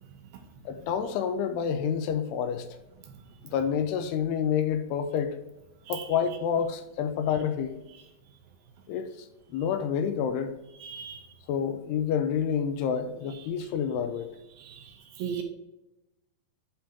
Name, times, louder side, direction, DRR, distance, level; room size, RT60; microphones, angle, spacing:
voice 1, 0.7-2.7 3.5-5.4 5.9-7.8 8.9-9.1 9.5-10.6 11.5-14.3, left 7 dB, 80° left, 2.6 m, -28 dB
voice 2, 10.8-11.3 14.6-15.4, right 8 dB, 75° right, 2.5 m, -37 dB
8.8 x 3.6 x 5.6 m
omnidirectional pair, 4.9 m